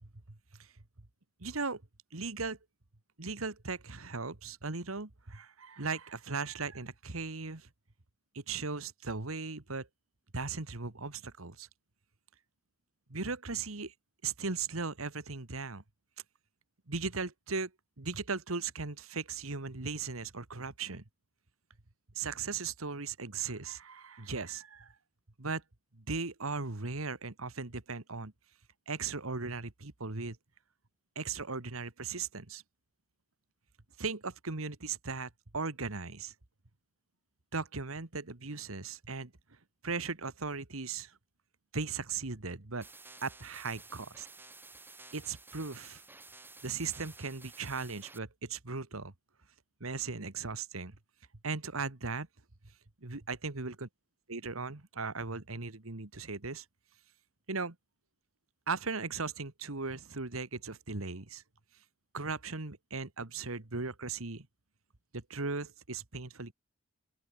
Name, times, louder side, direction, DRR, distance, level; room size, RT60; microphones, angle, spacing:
voice 1, 1.4-1.8 2.1-2.6 3.2-7.7 8.3-9.9 10.3-11.7 13.1-13.9 14.2-15.8 16.9-17.7 18.0-21.0 22.2-24.9 25.4-25.6 25.9-28.3 28.9-30.4 31.2-32.6 34.0-36.3 37.5-39.3 39.8-41.1 41.7-42.9 43.2-44.3 45.1-46.0 46.6-49.1 49.8-51.0 51.4-52.3 53.0-53.9 54.3-56.7 57.5-57.8 58.7-61.4 62.1-64.5 65.1-66.5, right 4 dB, 90° right, 1.8 m, -37 dB
sound 1, 42.8-48.2, right 3 dB, 10° right, 5.0 m, -53 dB
open air
head